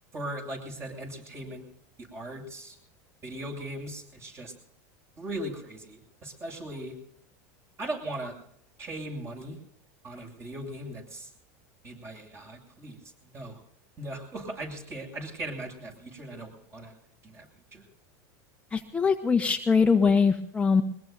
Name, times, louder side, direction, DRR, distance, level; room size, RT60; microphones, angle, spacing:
voice 1, 0.1-1.6 2.0-2.8 3.2-4.5 5.2-7.0 7.8-8.4 8.8-9.6 10.0-11.3 11.8-13.0 13.3-13.6 14.0-16.9 17.2-17.5 17.7-17.8, right 1 dB, 30° right, 3 dB, 7.5 m, -38 dB
voice 2, 18.7-20.8, left 5 dB, 15° left, 4 dB, 1.1 m, -22 dB
22.5 x 21.5 x 2.7 m, 0.70 s
supercardioid pair, 120°, 9 cm